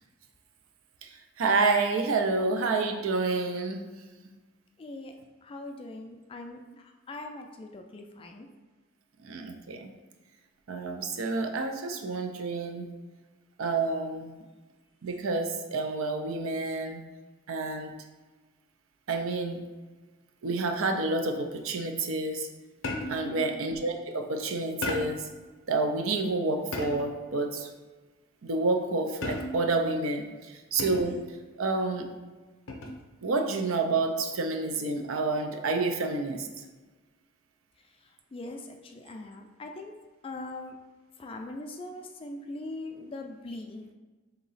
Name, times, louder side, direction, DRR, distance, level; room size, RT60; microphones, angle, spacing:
voice 1, 1.4-3.8 9.2-9.9 10.7-12.9 13.6-14.3 15.0-17.0 17.5-17.9 19.1-19.6 20.4-22.5 23.1-25.2 25.7-27.7 28.4-31.2 31.6-32.1 33.2-36.5, right 3 dB, 80° right, 5 dB, 0.5 m, -29 dB
voice 2, 4.8-5.1 5.4-8.5 23.2-23.7 38.3-39.9 40.2-40.7 41.2-43.9, left 2 dB, 25° left, 4 dB, 0.3 m, -41 dB
sound 1, 22.8-23.4 24.8-25.3 26.7-27.2 29.2-29.8 30.8-31.3 32.7-33.1, left 2 dB, 70° left, 0.6 m, -34 dB
3.8 x 2.9 x 4.0 m, 1.3 s
head